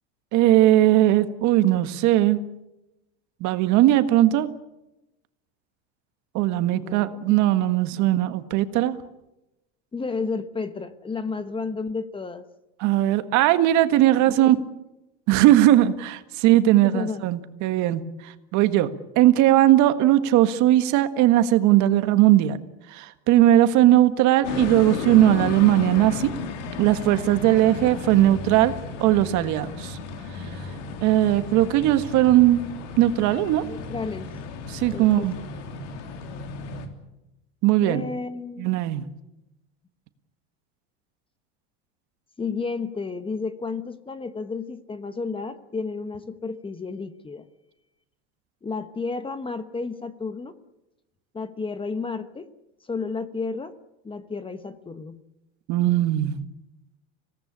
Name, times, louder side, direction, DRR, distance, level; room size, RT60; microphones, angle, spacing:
voice 1, 0.3-2.4 3.4-4.5 6.3-9.0 12.8-14.6 15.3-18.9 19.1-22.6 22.9-26.3 26.8-28.7 29.0-30.0 31.0-32.6 33.0-33.6 34.7-35.3 37.6-38.0 38.6-39.1 55.7-56.4, right 14 dB, 55° right, 10 dB, 1.7 m, -19 dB
voice 2, 6.7-7.4 8.0-8.1 9.9-12.4 14.0-14.7 16.8-17.2 33.6-34.3 34.9-35.5 37.8-38.8 42.4-47.4 48.6-50.5 51.3-52.5 52.9-53.7 54.0-55.2, left 4 dB, 15° left, 11 dB, 1.2 m, -32 dB
sound 1, 24.4-36.9, left 5 dB, 80° left, 3.4 m, -34 dB
25.0 x 18.0 x 8.6 m, 0.94 s
supercardioid pair, 125°, 36 cm